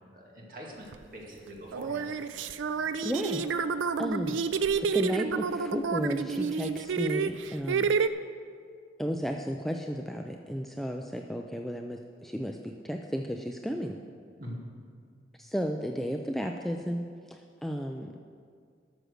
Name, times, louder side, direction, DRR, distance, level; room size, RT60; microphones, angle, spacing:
voice 1, 0.1-2.1 14.4-14.6, equal, 45° right, -2 dB, 2.1 m, -43 dB
sound 1, 0.9-1.0 1.7-8.1, right 5 dB, 85° right, 0.4 m, -29 dB
voice 2, 3.0-3.4 4.0-4.4 4.9-7.9 9.0-14.0 15.4-17.0 17.3-18.1, equal, ahead, 2 dB, 0.3 m, -33 dB
12.5 x 6.3 x 6.5 m, 2.2 s
head